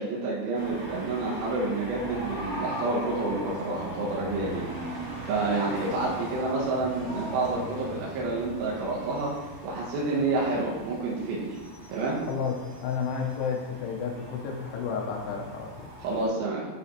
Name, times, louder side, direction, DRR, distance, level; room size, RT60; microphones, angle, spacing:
voice 1, 0.0-9.3 9.6-11.6 11.9-12.2 16.0-16.7, right 3 dB, 80° right, -5 dB, 3.0 m, -29 dB
sound 1, 0.5-16.3, right 1 dB, 45° right, 1.5 m, -42 dB
sound 2, 1.7-7.5, equal, 40° left, 1.6 m, -40 dB
voice 2, 12.8-15.9, left 6 dB, 85° left, 0 dB, 2.8 m, -31 dB
7.6 x 5.0 x 2.8 m, 1.4 s
omnidirectional pair, 4.8 m